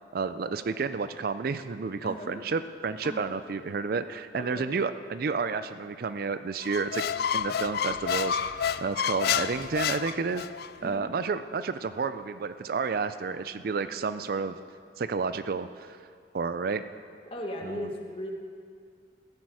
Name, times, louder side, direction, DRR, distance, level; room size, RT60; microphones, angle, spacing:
voice 1, 0.1-7.0 7.3-10.5 10.8-14.6 15.0-16.0 16.3-16.8 17.7-17.9, right 5 dB, 55° right, 12 dB, 0.4 m, -31 dB
voice 2, 2.0-2.4 3.0-3.3 4.4-4.7 10.8-11.1 17.2-18.3, left 1 dB, 30° left, 1 dB, 1.4 m, -37 dB
Squeak, 6.6-10.7, left 8 dB, 60° left, 0.3 m, -29 dB
15.5 x 10.5 x 4.8 m, 2.1 s
head